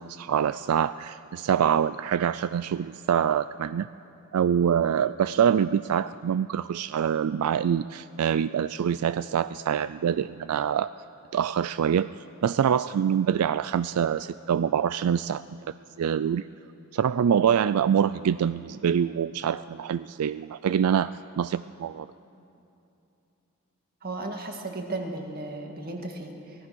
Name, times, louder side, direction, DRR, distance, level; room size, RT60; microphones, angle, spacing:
voice 1, 0.0-3.9 4.3-10.9 11.3-12.1 12.4-15.4 16.0-16.4 16.9-22.1, right 8 dB, 85° right, 15 dB, 0.3 m, -25 dB
voice 2, 24.0-26.7, right 2 dB, 45° right, 3 dB, 2.1 m, -35 dB
24.5 x 17.5 x 6.2 m, 2.9 s
head